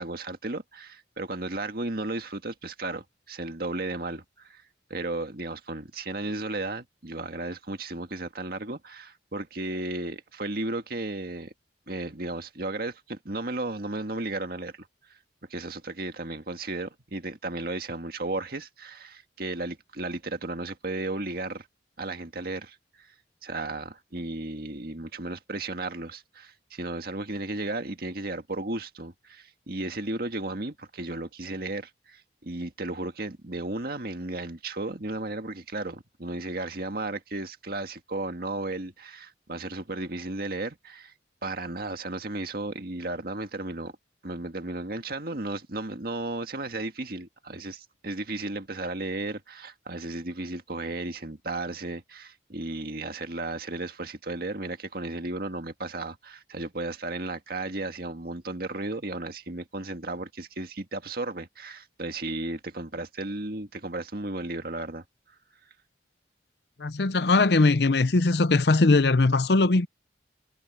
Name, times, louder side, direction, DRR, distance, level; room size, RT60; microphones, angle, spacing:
voice 1, 0.0-4.6 4.9-11.5 11.9-14.9 15.5-21.7 22.0-23.1 23.4-41.1 41.4-43.9 44.2-65.0, right 2 dB, 55° right, 1.9 m, -34 dB
voice 2, 66.8-69.9, left 3 dB, 65° left, 0.7 m, -20 dB
head